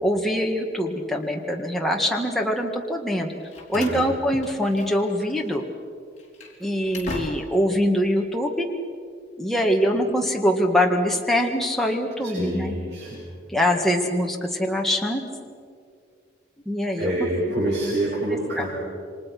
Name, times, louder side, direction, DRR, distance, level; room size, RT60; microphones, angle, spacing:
voice 1, 0.0-3.3 3.7-5.6 6.6-8.7 9.4-12.7 13.5-15.2 16.7-17.1 18.6-18.7, equal, ahead, 0 dB, 1.9 m, -23 dB
Slam, 3.2-5.2 5.4-5.6 6.1-7.7, left 2 dB, 40° left, 4.5 m, -39 dB
voice 2, 3.7-4.1 12.2-13.2 16.9-18.7, right 1 dB, 70° right, -8 dB, 7.9 m, -27 dB
28.5 x 24.5 x 6.1 m, 2.2 s
head